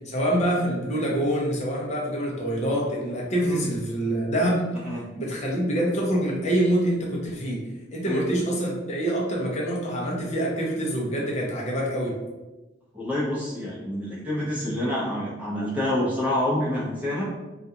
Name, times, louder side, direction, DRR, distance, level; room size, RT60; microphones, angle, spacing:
voice 1, 0.1-4.6 5.2-7.6 7.9-12.1, right 1 dB, 40° left, -3 dB, 0.6 m, -25 dB
voice 2, 12.9-17.3, left 1 dB, 10° right, -8 dB, 0.7 m, -27 dB
2.4 x 2.3 x 2.7 m, 1.1 s
head